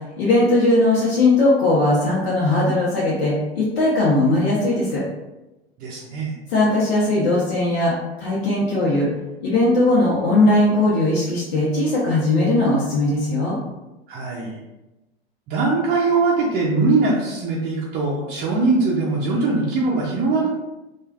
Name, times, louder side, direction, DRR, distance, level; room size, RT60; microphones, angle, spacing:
voice 1, 0.2-5.0 6.5-7.9 8.2-9.1 9.4-13.6, left 2 dB, 70° left, -6 dB, 0.9 m, -19 dB
voice 2, 5.8-6.3 14.1-14.6 15.5-20.5, right 3 dB, 30° right, -5 dB, 0.5 m, -21 dB
3.1 x 2.4 x 2.3 m, 1.0 s
hypercardioid pair, 95°, 31 cm